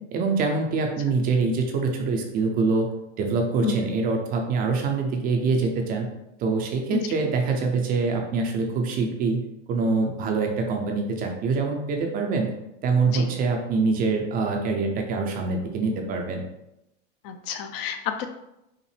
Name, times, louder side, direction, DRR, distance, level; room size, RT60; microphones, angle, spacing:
voice 1, 0.1-2.9 3.2-6.1 6.4-9.4 9.7-12.5 12.8-16.4, right 4 dB, 25° right, 3 dB, 0.5 m, -24 dB
voice 2, 6.9-7.2 13.1-13.3 17.2-18.3, left 9 dB, 45° left, 8 dB, 0.6 m, -29 dB
5.5 x 2.1 x 3.2 m, 0.88 s
hypercardioid pair, 120°, 37 cm